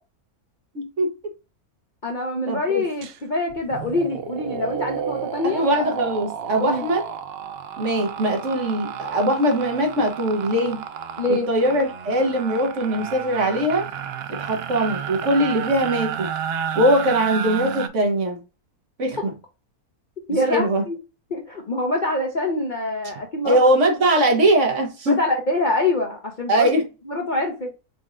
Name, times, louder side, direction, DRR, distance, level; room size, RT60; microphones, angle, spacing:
voice 1, 0.7-1.1 2.5-2.8 5.4-7.1 7.8-10.8 11.3-13.9 14.3-16.3 16.7-18.4 19.0-19.2 20.3-20.8 23.4-25.2 26.5-26.9, right 1 dB, 55° right, 1.3 m, -21 dB
voice 2, 2.0-5.6 6.6-6.8 11.2-11.5 20.3-21.0 21.3-23.6 25.1-26.7 27.1-27.7, left 2 dB, 40° left, 0.7 m, -25 dB
sound 1, 3.0-3.2 3.5-17.9, right 8 dB, 80° right, 0.5 m, -32 dB
4.3 x 4.0 x 2.5 m
omnidirectional pair, 1.6 m